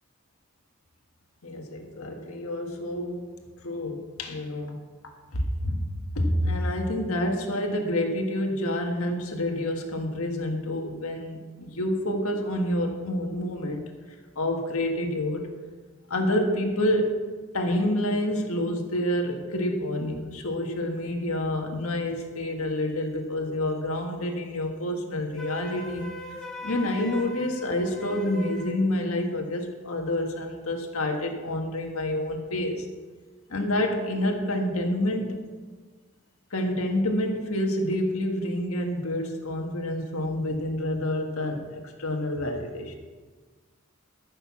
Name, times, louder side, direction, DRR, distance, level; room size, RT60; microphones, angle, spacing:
voice 1, 1.4-3.3 3.6-4.8 5.3-5.9 6.1-13.8 14.3-15.5 16.1-17.3 17.5-26.1 26.6-32.9 33.5-35.4 36.5-43.0, left 1 dB, 90° left, 2 dB, 1.7 m, -28 dB
Wind instrument woodwind instrument, 25.4-28.8, left 1 dB, ahead, 1.3 m, -39 dB
13.5 x 6.7 x 6.1 m, 1.4 s
head